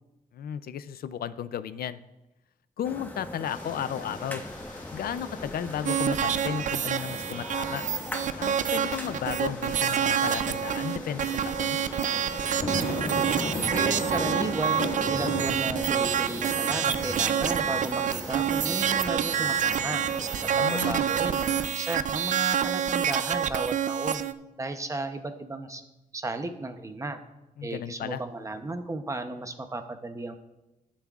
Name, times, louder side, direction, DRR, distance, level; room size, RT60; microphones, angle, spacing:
voice 1, 0.3-2.0 2.8-4.4 4.9-7.8 8.4-11.8 20.5-21.1 27.6-28.2, left 9 dB, 90° left, 14 dB, 0.4 m, -34 dB
sound 1, 2.8-21.7, left 1 dB, 10° left, 1.0 m, -40 dB
sound 2, 3.4-21.4, left 2 dB, 55° left, 1.9 m, -39 dB
sound 3, 5.9-24.3, right 8 dB, 55° right, 0.4 m, -27 dB
voice 2, 13.7-20.0 20.6-24.3 24.6-25.8 26.1-27.2 27.6-30.4, right 2 dB, 20° right, 8 dB, 0.7 m, -34 dB
18.5 x 7.3 x 2.4 m, 0.99 s
wide cardioid pair, 140°, 15 cm